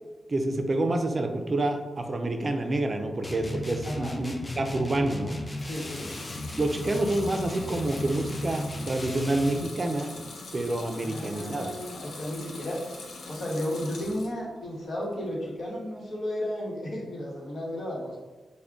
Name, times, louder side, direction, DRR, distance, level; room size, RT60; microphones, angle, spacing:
voice 1, 0.3-5.4 6.6-10.1 10.5-11.8, right 2 dB, 40° right, 4 dB, 0.4 m, -28 dB
sound 1, 3.2-9.7, left 1 dB, 25° left, 0.4 m, -36 dB
voice 2, 3.8-4.2 5.6-6.1 11.0-12.9 13.3-18.2, left 1 dB, 65° left, -3 dB, 1.0 m, -33 dB
Water tap faucet / Sink (filling or washing) / Liquid, 5.5-14.4 14.8-15.5, left 3 dB, 90° left, 0.5 m, -43 dB
3.3 x 2.1 x 3.7 m, 1.2 s
cardioid pair, 75°, 0 cm